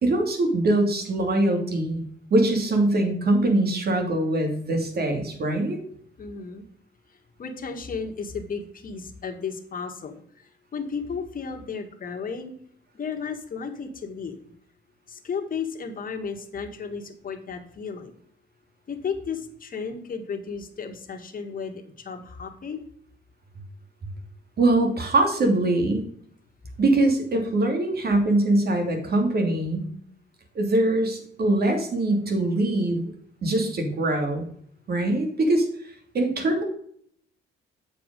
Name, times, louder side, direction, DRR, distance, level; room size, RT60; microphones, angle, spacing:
voice 1, 0.0-5.8 24.6-26.0 26.8-29.8 30.5-33.1 33.4-34.5 34.9-35.7 36.1-36.6, right 2 dB, 55° right, 4 dB, 2.7 m, -23 dB
voice 2, 6.2-6.6 7.4-12.5 12.9-14.4 15.1-18.1 18.9-22.8, left 5 dB, 45° left, 4 dB, 1.8 m, -34 dB
8.0 x 5.3 x 5.2 m, 0.64 s
cardioid pair, 90°, 20 cm